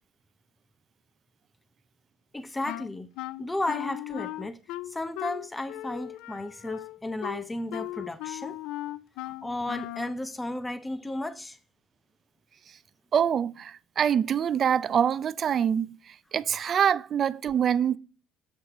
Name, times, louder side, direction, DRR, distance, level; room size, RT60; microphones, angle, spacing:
voice 1, 2.3-3.1 3.4-8.6 9.2-11.6, left 1 dB, 10° left, 0.6 m, -34 dB
Wind instrument woodwind instrument, 2.7-10.2, left 16 dB, 80° left, 0.3 m, -37 dB
voice 2, 13.1-16.0 16.3-18.0, right 8 dB, 40° right, 0.4 m, -25 dB
8.0 x 4.3 x 4.9 m
cardioid pair, 125°, 0 cm